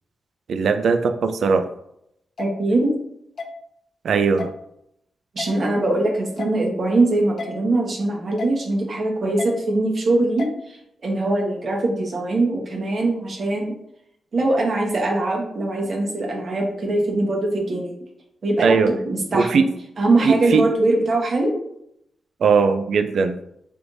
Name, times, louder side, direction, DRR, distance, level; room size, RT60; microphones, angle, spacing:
voice 1, 0.5-1.7 4.0-4.5 18.6-18.9 19.3-19.7 20.2-20.6 22.4-23.4, right 5 dB, 75° right, 9 dB, 0.3 m, -19 dB
sound 1, 2.4-2.5 3.4-3.5 4.4-4.5 5.4-5.5 6.4-6.6 7.4-7.5 8.4-8.6 9.4-9.5 10.4-10.6, left 4 dB, 60° left, 0.5 m, -31 dB
voice 2, 2.4-2.9 5.3-10.8 11.0-13.7 14.3-17.9 18.4-19.7 20.0-21.5, right 2 dB, 60° right, 0 dB, 1.1 m, -22 dB
4.6 x 3.4 x 2.6 m, 0.77 s
cardioid pair, 70°, 0 cm